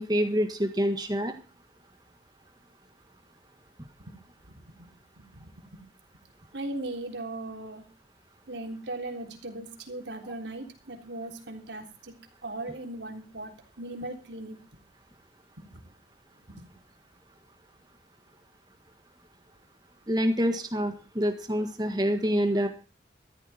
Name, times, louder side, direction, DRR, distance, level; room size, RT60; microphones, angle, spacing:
voice 1, 0.0-1.3 20.1-22.7, equal, 25° right, 7 dB, 1.5 m, -26 dB
voice 2, 4.4-5.8 6.5-7.8 8.5-12.1 12.4-14.8 15.6-15.8 16.4-16.7, right 2 dB, 90° right, 3 dB, 3.6 m, -39 dB
14.0 x 13.5 x 4.3 m, 0.35 s
head